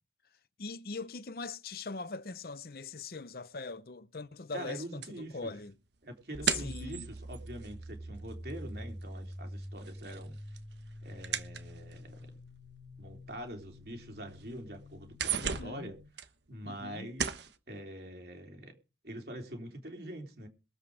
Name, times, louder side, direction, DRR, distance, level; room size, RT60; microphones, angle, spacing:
voice 1, 0.6-5.7 6.5-7.1 15.4-15.9 16.6-17.1, left 3 dB, 55° left, 0.7 m, -42 dB
voice 2, 4.5-5.5 6.0-10.4 11.0-12.3 13.0-18.8 19.0-20.5, right 1 dB, 60° right, 3.6 m, -44 dB
sound 1, 5.0-8.7 9.0-12.2 12.9-13.0 13.5-13.6 14.0-14.5 14.9-16.9 17.2-17.6, right 7 dB, 75° right, 1.2 m, -37 dB
sound 2, 6.3-16.1, equal, 35° right, 2.6 m, -46 dB
22.0 x 8.1 x 5.0 m
head